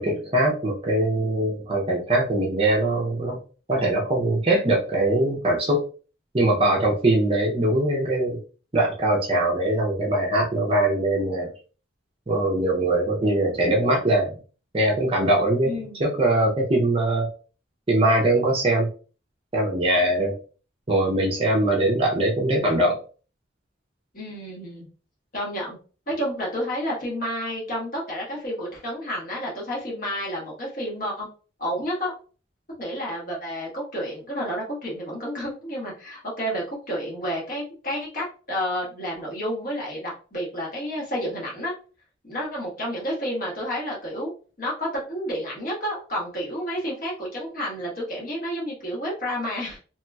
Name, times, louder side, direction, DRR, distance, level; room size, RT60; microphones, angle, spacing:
voice 1, 0.0-3.4 3.7-5.8 6.3-8.4 8.7-11.5 12.3-14.4 14.7-17.3 17.9-18.9 19.5-20.4 20.9-23.0, right 1 dB, 30° right, -1 dB, 0.5 m, -22 dB
voice 2, 15.6-16.0 24.1-24.9 25.3-25.8 26.1-31.3 31.6-32.1 32.8-41.7 42.2-44.3 44.6-49.8, equal, 45° left, -4 dB, 1.3 m, -30 dB
3.0 x 2.9 x 2.2 m, 0.37 s
head